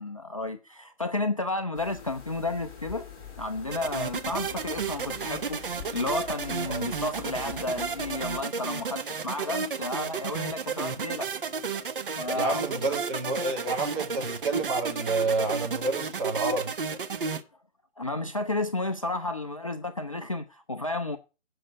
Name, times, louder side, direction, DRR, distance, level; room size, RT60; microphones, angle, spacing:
voice 1, 0.0-3.1 3.4-5.6 5.9-11.3 12.2-13.0 17.3-17.4 18.0-21.2, left 2 dB, 30° left, 0.5 m, -32 dB
sound 1, 1.7-8.4, left 7 dB, 15° left, 3.5 m, -45 dB
sound 2, 3.7-17.4, right 5 dB, 45° right, 1.0 m, -33 dB
voice 2, 12.3-16.7, right 3 dB, 25° right, 2.4 m, -29 dB
8.8 x 6.3 x 7.7 m
figure-of-eight pair, 145°, 36 cm